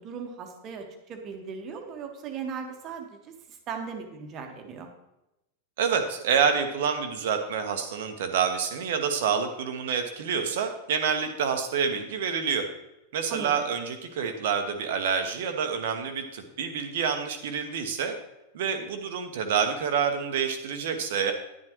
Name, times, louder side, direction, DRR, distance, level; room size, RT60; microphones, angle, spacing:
voice 1, 0.0-4.9 13.3-13.5, right 6 dB, 35° right, 4 dB, 1.6 m, -38 dB
voice 2, 5.8-12.7 13.1-18.1 18.5-21.3, right 6 dB, 55° right, 7 dB, 1.2 m, -27 dB
11.0 x 10.5 x 3.1 m, 0.91 s
figure-of-eight pair, 90°, 0 cm